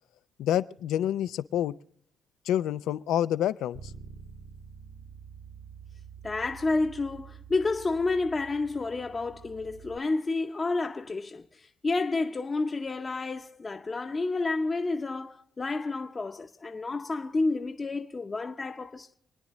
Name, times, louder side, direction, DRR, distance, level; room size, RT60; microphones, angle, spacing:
voice 1, 0.4-1.7 2.5-3.9, left 11 dB, 85° left, 0.5 m, -28 dB
Bass guitar, 3.7-10.0, right 7 dB, 60° right, 1.7 m, -48 dB
voice 2, 6.2-19.1, left 3 dB, 30° left, 0.8 m, -30 dB
28.5 x 9.9 x 3.1 m
cardioid pair, 90°, 0 cm